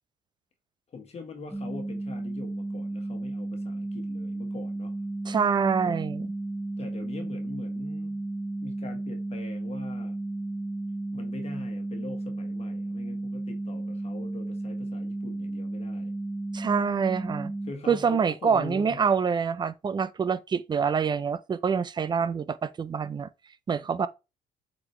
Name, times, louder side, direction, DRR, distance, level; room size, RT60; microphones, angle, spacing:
voice 1, 0.9-4.9 5.8-6.0 6.8-8.2 8.6-10.1 11.1-16.1 17.7-19.1, left 4 dB, 40° left, 1.5 m, -43 dB
sound 1, 1.5-17.7, right 2 dB, 5° left, 1.3 m, -33 dB
voice 2, 5.3-6.3 16.5-17.5 17.9-23.3 23.7-24.1, right 6 dB, 25° right, 0.5 m, -26 dB
7.6 x 4.1 x 3.2 m
cardioid pair, 110°, 17 cm